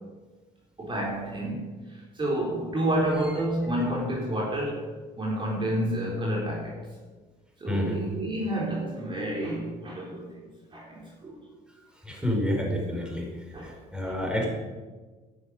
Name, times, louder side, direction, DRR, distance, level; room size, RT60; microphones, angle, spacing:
voice 1, 0.8-4.9 5.2-6.8 7.6-10.3 10.7-11.4 12.1-12.2 13.5-14.2, right 1 dB, 30° right, -3 dB, 4.0 m, -30 dB
voice 2, 7.7-8.0 12.1-14.5, equal, 5° right, 0 dB, 5.5 m, -29 dB
12.0 x 10.5 x 9.8 m, 1.3 s
cardioid pair, 110°, 17 cm